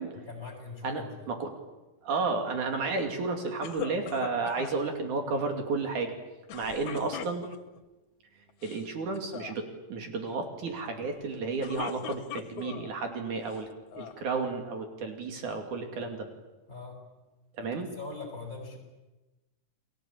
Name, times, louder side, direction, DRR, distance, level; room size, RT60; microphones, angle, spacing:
voice 1, 0.3-1.3 16.7-17.0 17.8-18.8, left 3 dB, 25° left, 2 dB, 6.7 m, -41 dB
voice 2, 0.8-1.5 2.0-6.1 6.5-7.4 8.6-13.7 14.0-16.3 17.6-17.9, right 4 dB, 70° right, 4 dB, 4.0 m, -32 dB
sound 1, 3.6-4.8 6.5-7.8 8.5-8.9 9.1-9.5 11.4-12.9 13.5-14.2, left 10 dB, 70° left, 2.5 m, -40 dB
30.0 x 20.5 x 8.6 m, 1.1 s
omnidirectional pair, 3.7 m